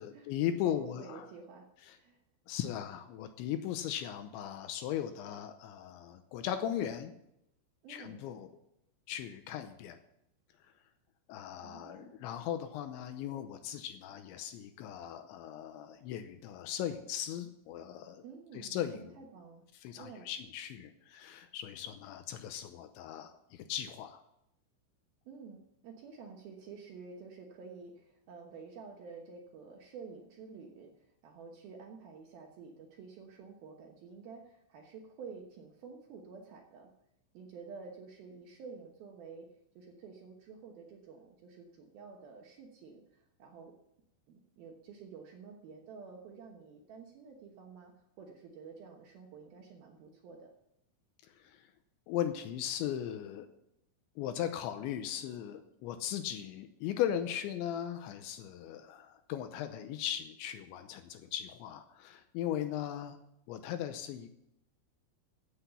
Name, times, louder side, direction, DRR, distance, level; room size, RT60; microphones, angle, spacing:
voice 1, 0.0-1.3 1.9-2.0 2.5-7.2 7.9-8.5 9.1-10.0 10.6-10.7 11.3-18.2 18.5-19.3 19.7-24.2 51.2-51.7 52.1-53.5 54.2-63.2 63.5-64.4, left 10 dB, 80° left, 8 dB, 2.8 m, -38 dB
voice 2, 0.6-2.2 7.8-8.2 11.6-12.1 18.2-19.6 19.9-20.3 25.3-36.9 37.3-39.5 39.8-43.7 44.3-50.5, right 5 dB, 70° right, 1 dB, 2.4 m, -50 dB
16.0 x 8.0 x 6.9 m, 0.82 s
omnidirectional pair, 5.7 m